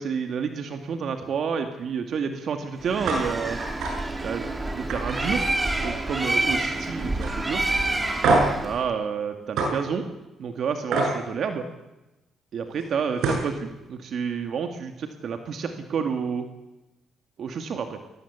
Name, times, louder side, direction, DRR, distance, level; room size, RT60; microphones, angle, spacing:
voice 1, 0.0-3.6 4.2-7.7 8.6-10.1 10.4-11.7 12.5-16.5 17.4-18.0, right 6 dB, 60° right, 6 dB, 2.3 m, -29 dB
Bird, 2.8-8.9, right 2 dB, 20° right, 3.1 m, -28 dB
sound 1, 3.0-3.2 3.6-3.9 4.3-4.5 4.9-6.1 6.4-6.8 7.2-7.3 8.2-8.6 9.6-9.7 10.9-11.1 12.8-12.9 13.2-13.5, right 3 dB, 80° right, 7.9 m, -24 dB
22.5 x 19.0 x 8.3 m, 0.99 s
cardioid pair, 90°, 0 cm